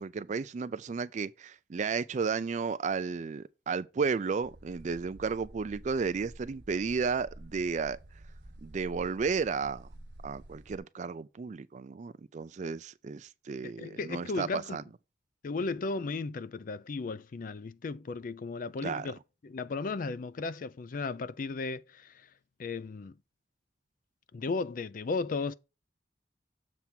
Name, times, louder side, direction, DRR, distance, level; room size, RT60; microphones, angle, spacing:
voice 1, 0.0-8.0 8.6-9.9 10.2-14.8 18.8-19.1, right 5 dB, 40° right, 0.4 m, -33 dB
sound 1, 4.4-10.8, right 1 dB, 80° right, 1.2 m, -50 dB
voice 2, 13.6-14.8 15.4-19.2 19.4-22.3 22.6-23.1 24.3-25.5, left 4 dB, 50° left, 0.4 m, -35 dB
7.3 x 3.4 x 5.8 m
head